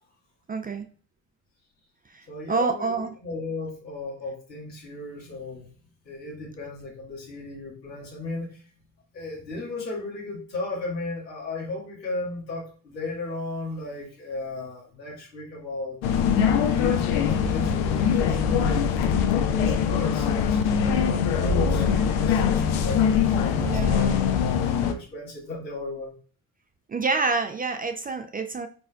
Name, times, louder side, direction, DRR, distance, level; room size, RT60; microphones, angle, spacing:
voice 1, 0.5-0.9 2.1-3.1 23.6-24.2 26.9-28.7, right 4 dB, 20° right, 7 dB, 0.4 m, -27 dB
voice 2, 2.3-5.7 6.0-8.6 9.1-16.0 16.5-20.6 20.9-26.1, left 2 dB, 85° left, -5 dB, 1.5 m, -36 dB
sound 1, 16.0-24.9, left 7 dB, 65° left, 0.7 m, -22 dB
4.3 x 4.3 x 2.2 m, 0.42 s
figure-of-eight pair, 45°, 49 cm